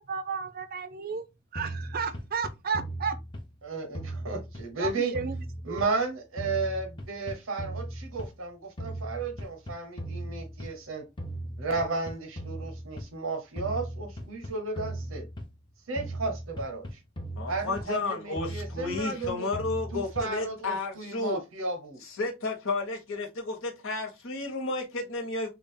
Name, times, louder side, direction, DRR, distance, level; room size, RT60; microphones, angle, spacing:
voice 1, 0.1-1.2 1.5-3.2 4.8-5.4 5.7-5.8, right 5 dB, 50° right, 0.5 m, -33 dB
sound 1, 1.6-3.6 3.9-6.1 6.4-8.5 8.8-10.9 11.2-13.2 13.6-15.7 16.0-18.1 18.4-20.5, right 1 dB, 25° left, 0.6 m, -38 dB
voice 2, 3.6-5.1 5.6-11.1 11.6-15.3 15.9-17.0 17.5-19.5 19.9-22.0, right 3 dB, 90° right, 0.9 m, -33 dB
voice 3, 17.4-21.4 22.0-25.5, left 3 dB, 85° left, 1.2 m, -32 dB
3.6 x 2.4 x 3.6 m
head